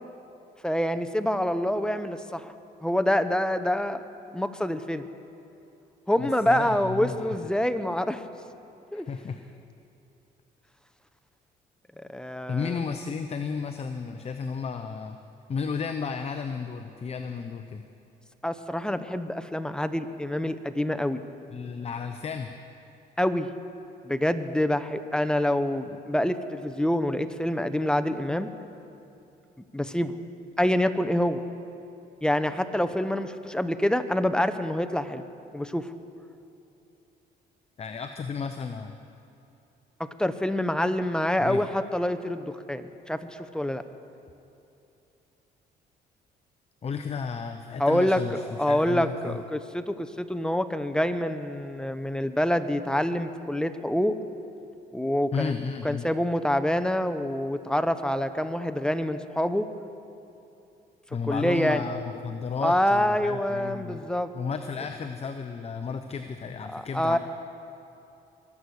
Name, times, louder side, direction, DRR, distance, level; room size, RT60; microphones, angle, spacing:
voice 1, 0.6-2.5 2.8-4.0 4.3-5.1 6.1-8.2 8.9-9.1 12.0-12.8 18.4-21.2 23.2-23.5 24.0-28.5 29.7-30.2 30.6-31.4 32.2-35.2 35.5-35.9 40.0-43.8 47.8-54.2 54.9-55.5 55.8-59.7 61.3-61.9 62.6-64.3 66.7-67.2, left 1 dB, 5° left, 10 dB, 0.8 m, -26 dB
voice 2, 6.2-7.2 8.9-9.4 12.5-15.2 15.5-17.8 21.5-22.5 37.8-38.9 41.4-41.6 46.8-49.4 55.3-56.1 61.1-64.0 64.3-67.2, left 5 dB, 35° left, 7 dB, 0.7 m, -33 dB
23.0 x 8.4 x 6.4 m, 2.8 s
cardioid pair, 80°, 18 cm